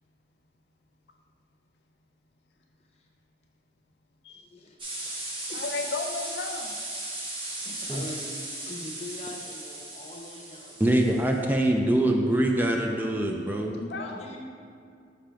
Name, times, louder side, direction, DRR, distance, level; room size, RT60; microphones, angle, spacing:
voice 1, 4.4-4.8 5.0-5.6 7.6-10.8 13.9-14.4, left 1 dB, 35° left, 0 dB, 0.7 m, -43 dB
sound 1, 4.8-11.4, right 1 dB, 30° right, 1.0 m, -37 dB
voice 2, 5.5-6.8 13.8-14.4, left 3 dB, 65° left, 4 dB, 0.4 m, -34 dB
voice 3, 10.8-13.8, right 1 dB, 10° right, 1 dB, 0.3 m, -24 dB
5.5 x 3.4 x 5.0 m, 2.4 s
head